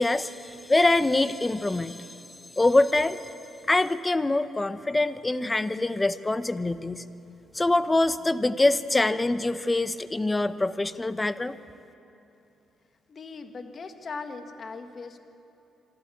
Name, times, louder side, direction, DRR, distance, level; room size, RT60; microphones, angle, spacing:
voice 1, 0.0-2.0 2.6-3.2 3.7-7.0 7.5-11.5, left 2 dB, 20° left, 13 dB, 0.7 m, -24 dB
voice 2, 13.1-15.2, left 4 dB, 45° left, 6 dB, 1.6 m, -39 dB
26.0 x 12.5 x 8.6 m, 2.8 s
cardioid pair, 90°, 0 cm